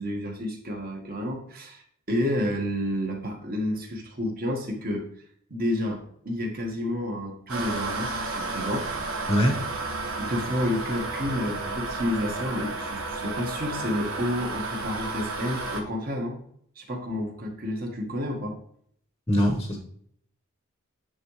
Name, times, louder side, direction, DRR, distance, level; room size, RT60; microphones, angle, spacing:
voice 1, 0.0-5.0 5.5-8.9 10.2-16.4 16.7-18.6, left 1 dB, 45° right, 1 dB, 1.4 m, -30 dB
sound 1, 7.5-15.8, right 3 dB, 75° right, 1.2 m, -32 dB
voice 2, 9.3-9.6 19.3-19.8, equal, 15° left, 3 dB, 0.8 m, -22 dB
10.5 x 3.6 x 3.1 m, 0.65 s
head